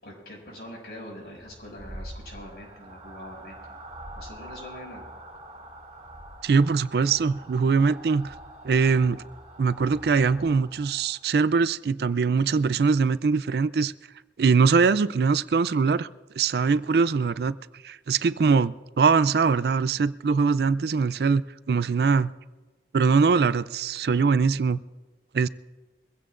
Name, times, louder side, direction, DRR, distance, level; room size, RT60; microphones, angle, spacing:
voice 1, 0.0-3.8 4.1-5.1, equal, 65° left, 6.2 m, -43 dB
sound 1, 1.3-11.3, right 1 dB, 35° right, 2.5 m, -45 dB
voice 2, 6.4-8.3 8.6-9.2 9.6-13.9 14.4-16.1 16.4-17.6 17.8-21.4 21.7-22.3 22.9-24.8 25.3-25.5, right 5 dB, 60° right, 0.4 m, -22 dB
23.0 x 16.0 x 2.5 m
head